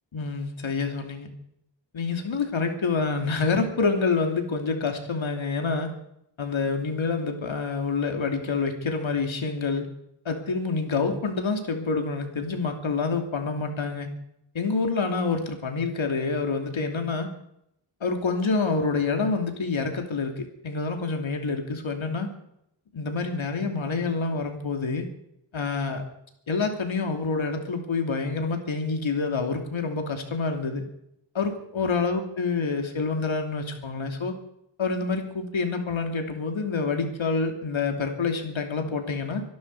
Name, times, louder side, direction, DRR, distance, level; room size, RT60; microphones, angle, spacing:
voice 1, 0.1-1.3 1.9-5.9 6.4-9.9 10.2-14.1 14.5-17.3 18.0-22.3 22.9-25.1 25.5-26.0 26.5-30.8 31.3-34.3 34.8-39.4, left 4 dB, 80° left, 4 dB, 2.9 m, -27 dB
24.5 x 11.5 x 4.9 m, 0.76 s
wide cardioid pair, 90°, 46 cm